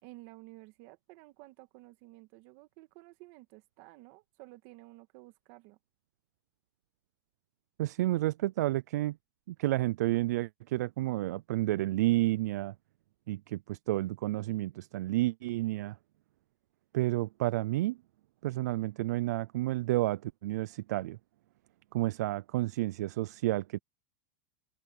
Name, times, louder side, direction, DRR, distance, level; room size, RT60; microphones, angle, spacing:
voice 1, 0.0-5.8, right 21 dB, 45° right, 1.9 m, -53 dB
voice 2, 7.8-9.2 9.5-12.7 13.3-16.0 16.9-18.0 18.4-21.2 21.9-23.8, right 17 dB, 70° right, 0.4 m, -30 dB
supercardioid pair, 160°, 9 cm